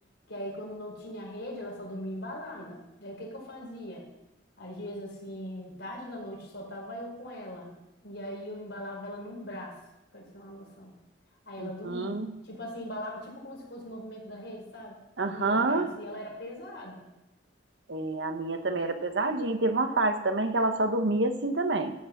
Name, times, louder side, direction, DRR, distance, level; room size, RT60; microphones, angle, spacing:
voice 1, 0.3-4.0 4.6-7.7 8.0-9.8 10.1-10.9 11.5-15.0 15.3-17.1, left 1 dB, 70° left, -2 dB, 4.7 m, -40 dB
voice 2, 11.6-12.3 15.2-15.9 17.9-21.9, right 2 dB, 65° right, 7 dB, 1.1 m, -27 dB
13.5 x 6.0 x 7.3 m, 0.93 s
head